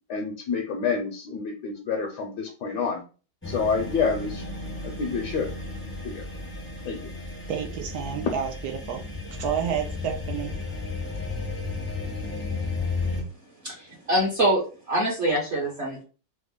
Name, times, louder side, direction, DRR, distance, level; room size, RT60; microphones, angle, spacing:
voice 1, 0.1-3.0 3.5-4.4 4.8-5.5 6.0-6.2 6.9-7.0, left 5 dB, 70° left, 2 dB, 1.1 m, -28 dB
sound 1, 3.4-13.2, left 3 dB, 10° left, 0.5 m, -33 dB
voice 2, 7.5-9.1 9.4-10.5, right 8 dB, 70° right, 3 dB, 0.9 m, -30 dB
voice 3, 13.6-16.0, right 1 dB, 45° right, -5 dB, 1.0 m, -25 dB
3.3 x 2.0 x 3.6 m, 0.37 s
omnidirectional pair, 2.0 m